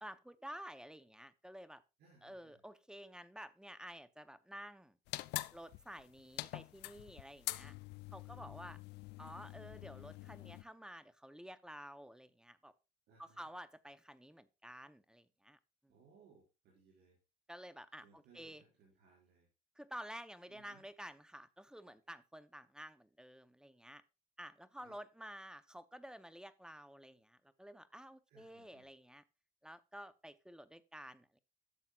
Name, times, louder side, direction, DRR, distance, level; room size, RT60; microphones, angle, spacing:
voice 1, 0.0-1.8 2.2-4.9 5.5-7.7 8.1-8.8 9.2-12.7 13.2-15.6 17.5-18.6 19.8-24.0 24.4-29.2 29.6-31.4, equal, 5° right, 0.6 m, -51 dB
voice 2, 2.0-2.6 8.2-8.8 13.1-13.5 15.9-17.2 18.0-19.5 20.5-20.8 24.8-25.0 28.3-28.9, right 5 dB, 75° right, 4.7 m, -66 dB
sound 1, 5.1-10.6, left 18 dB, 85° left, 0.4 m, -45 dB
12.0 x 7.2 x 2.3 m
cardioid pair, 110°, 17 cm